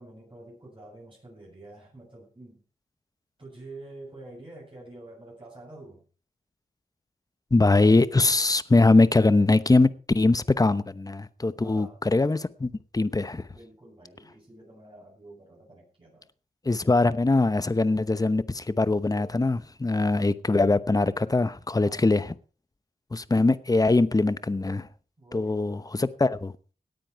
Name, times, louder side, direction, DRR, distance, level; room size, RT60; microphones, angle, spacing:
voice 1, 0.0-2.6 3.4-6.0 11.6-12.0 13.5-16.3 21.7-22.1 25.2-25.6, right 2 dB, 35° right, 7.8 m, -47 dB
voice 2, 7.5-13.5 16.6-22.3 23.1-24.9 25.3-26.5, left 2 dB, 25° left, 0.9 m, -22 dB
17.5 x 9.3 x 4.6 m
cardioid pair, 70°, 15 cm